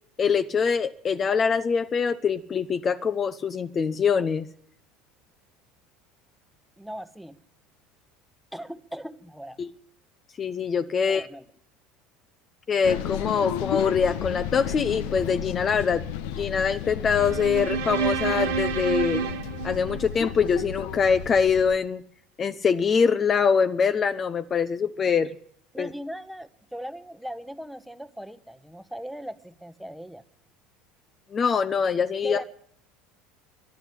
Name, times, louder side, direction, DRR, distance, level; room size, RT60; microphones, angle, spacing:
voice 1, 0.2-4.5 9.6-9.7 10.4-11.3 12.7-16.0 16.4-19.2 19.6-22.0 22.4-25.3 25.8-25.9 31.3-32.4, left 6 dB, 35° left, 11 dB, 0.6 m, -24 dB
voice 2, 6.8-7.4 8.5-9.6 11.0-11.5 25.7-30.2 32.2-32.4, equal, ahead, 11 dB, 1.0 m, -38 dB
sound 1, 12.8-21.8, left 9 dB, 65° left, 0.8 m, -33 dB
sound 2, 17.1-20.5, right 8 dB, 70° right, 1.5 m, -29 dB
12.0 x 11.5 x 9.7 m, 0.65 s
figure-of-eight pair, 70°, 0 cm